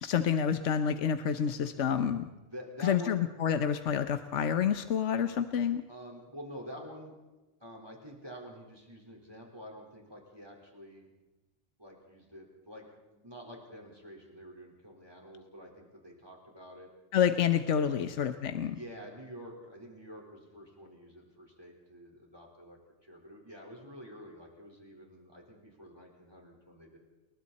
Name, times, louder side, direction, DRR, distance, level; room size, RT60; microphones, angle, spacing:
voice 1, 0.0-2.3 2.8-5.8 17.1-18.8, left 8 dB, 75° left, 9 dB, 1.3 m, -28 dB
voice 2, 2.4-3.2 5.9-7.1 7.6-11.1 11.8-16.9 17.9-18.1 18.5-27.0, equal, 20° right, 0 dB, 4.5 m, -48 dB
30.0 x 21.0 x 4.3 m, 1.1 s
omnidirectional pair, 1.2 m